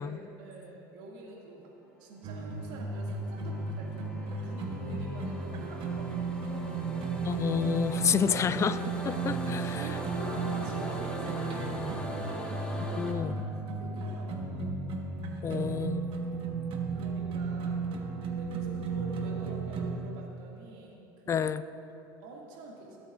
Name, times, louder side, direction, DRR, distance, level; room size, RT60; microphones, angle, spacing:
voice 1, 0.4-1.7 2.0-7.3 9.7-13.2 13.8-14.8 16.7-17.9 18.2-21.0 21.2-21.5 22.2-23.0, right 2 dB, 70° right, -3 dB, 2.2 m, -46 dB
sound 1, 2.2-20.0, right 4 dB, 50° right, 1.2 m, -34 dB
sound 2, 2.4-13.1, equal, 10° left, 1.2 m, -41 dB
voice 2, 7.2-9.9 13.0-13.3 15.4-16.1 21.3-21.6, left 7 dB, 25° left, 14 dB, 0.3 m, -29 dB
17.0 x 8.0 x 2.5 m, 2.9 s
supercardioid pair, 105°, 11 cm